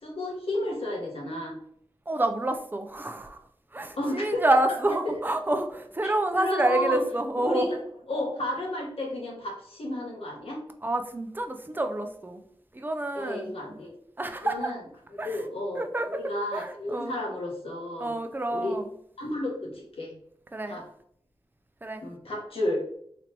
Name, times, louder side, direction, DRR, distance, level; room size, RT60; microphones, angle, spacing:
voice 1, 0.0-1.5 4.0-4.4 5.0-5.1 6.0-7.0 7.4-7.8 8.1-10.6 13.1-13.9 14.4-14.8 15.1-18.1 18.5-18.8 19.2-20.1 20.6-20.8 22.0-22.8, left 1 dB, 75° left, -2 dB, 1.3 m, -32 dB
voice 2, 2.1-3.4 3.7-7.7 10.8-12.4 12.7-13.8 14.2-14.7 15.2-15.4 15.8-16.2 16.5-17.1 18.0-18.8 20.5-20.8 21.8-22.0, right 1 dB, 20° right, 6 dB, 0.5 m, -28 dB
4.0 x 3.2 x 2.9 m, 0.67 s
wide cardioid pair, 100°, 10 cm